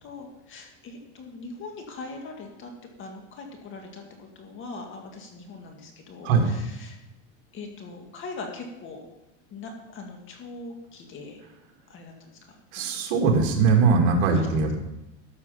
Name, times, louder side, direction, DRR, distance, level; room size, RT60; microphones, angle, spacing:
voice 1, 0.0-2.7 3.0-7.0 7.5-9.0 9.5-11.4 11.9-13.1 14.3-14.5, left 3 dB, 30° left, 3 dB, 2.0 m, -41 dB
voice 2, 12.7-14.8, right 4 dB, 60° right, 1 dB, 2.5 m, -21 dB
13.0 x 6.3 x 5.7 m, 0.91 s
supercardioid pair, 140°, 38 cm